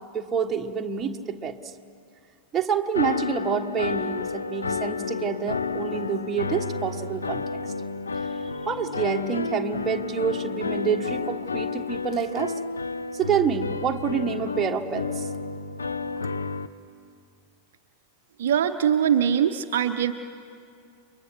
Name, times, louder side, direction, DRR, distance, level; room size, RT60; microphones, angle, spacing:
voice 1, 0.1-1.6 2.5-7.4 8.6-12.5 13.1-15.3, right 7 dB, 20° right, 3 dB, 1.4 m, -27 dB
sound 1, 2.9-16.7, left 4 dB, 75° left, 0.7 m, -31 dB
voice 2, 18.4-20.1, right 9 dB, 60° right, 7 dB, 0.8 m, -22 dB
30.0 x 23.0 x 6.3 m, 2.3 s
figure-of-eight pair, 90°, 0 cm